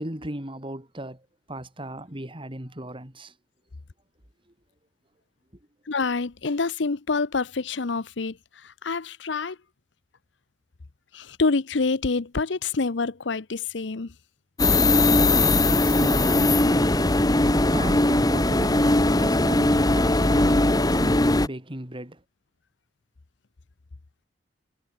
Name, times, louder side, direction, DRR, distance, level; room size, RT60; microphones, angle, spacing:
voice 1, 0.0-3.3 14.8-22.2, right 1 dB, 30° right, 4.2 m, -36 dB
voice 2, 5.9-8.3 8.8-9.6 11.1-14.1, left 4 dB, 75° left, 0.8 m, -26 dB
sound 1, 14.6-21.5, left 2 dB, 20° left, 1.5 m, -20 dB
head